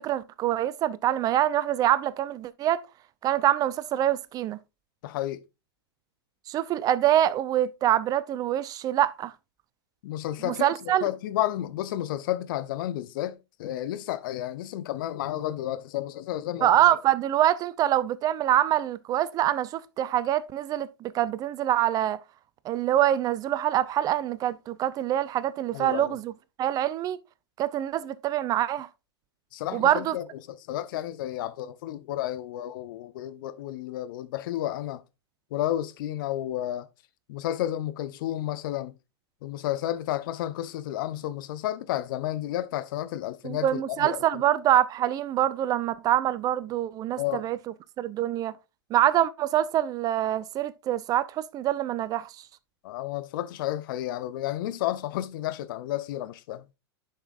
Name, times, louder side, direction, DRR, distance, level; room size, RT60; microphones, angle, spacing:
voice 1, 0.0-2.8 3.2-4.6 6.5-9.3 10.4-11.0 16.6-22.2 22.6-26.3 26.6-27.2 27.6-28.9 29.7-30.2 43.4-47.6 48.0-48.5 48.9-52.3, right 12 dB, 30° right, 0.4 m, -25 dB
voice 2, 5.0-5.4 10.0-16.7 25.7-26.2 29.5-35.0 35.5-36.9 37.3-38.9 39.4-44.4 47.2-47.4 52.8-56.6, left 13 dB, 55° left, 0.8 m, -31 dB
10.5 x 5.7 x 2.5 m
figure-of-eight pair, 100°, 14 cm